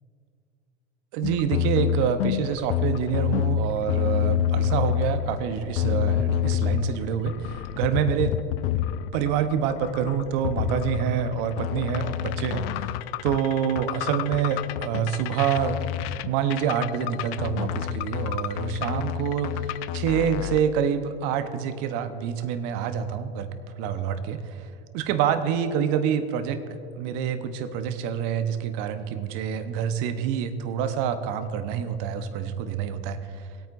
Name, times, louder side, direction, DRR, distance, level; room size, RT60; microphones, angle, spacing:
voice 1, 1.1-8.4 9.1-12.9 13.2-15.8 16.3-23.5 23.8-24.6 24.9-26.6 27.0-33.5, right 8 dB, 55° right, 10 dB, 1.1 m, -27 dB
sound 1, 1.2-20.6, left 9 dB, 60° left, 0.5 m, -28 dB
20.0 x 9.0 x 2.6 m, 2.5 s
hypercardioid pair, 85°, 33 cm